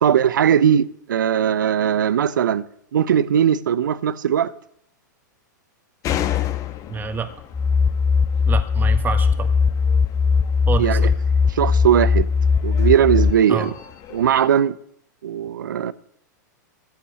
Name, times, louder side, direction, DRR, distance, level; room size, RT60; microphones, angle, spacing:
voice 1, 0.0-2.7 2.9-4.5 10.8-11.1 11.5-12.3 12.6-13.7 14.1-14.8 15.2-15.9, right 9 dB, 80° right, 0.7 m, -19 dB
sound 1, 6.0-14.5, left 12 dB, 35° left, 1.1 m, -33 dB
voice 2, 6.9-7.3 8.5-9.5 10.7-11.1 13.5-13.7, right 6 dB, 20° right, 1.7 m, -27 dB
sound 2, 7.5-13.3, left 5 dB, 10° left, 0.4 m, -19 dB
14.5 x 5.6 x 9.4 m
hypercardioid pair, 115°, 10 cm